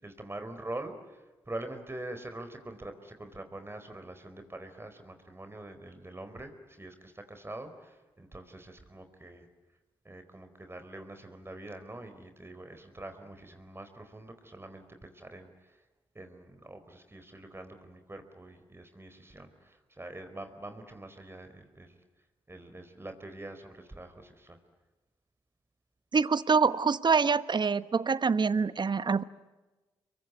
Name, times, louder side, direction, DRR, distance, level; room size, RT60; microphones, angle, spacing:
voice 1, 0.0-9.5 10.0-15.8 16.1-22.0 22.5-24.6, right 1 dB, 20° right, 7 dB, 4.6 m, -44 dB
voice 2, 26.1-29.2, right 5 dB, 45° right, 15 dB, 1.1 m, -25 dB
26.5 x 23.0 x 9.6 m, 1.1 s
supercardioid pair, 45°, 11 cm